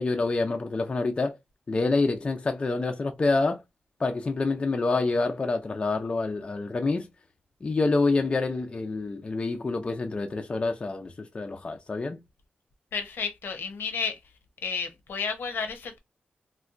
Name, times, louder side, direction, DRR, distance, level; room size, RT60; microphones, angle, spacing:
voice 1, 0.0-1.4 1.7-3.6 4.0-7.1 7.6-12.2, left 3 dB, 30° left, 0.4 m, -27 dB
voice 2, 12.9-14.2 14.6-16.0, left 5 dB, 90° left, 0.7 m, -32 dB
4.2 x 2.1 x 2.4 m
wide cardioid pair, 150°, 4 cm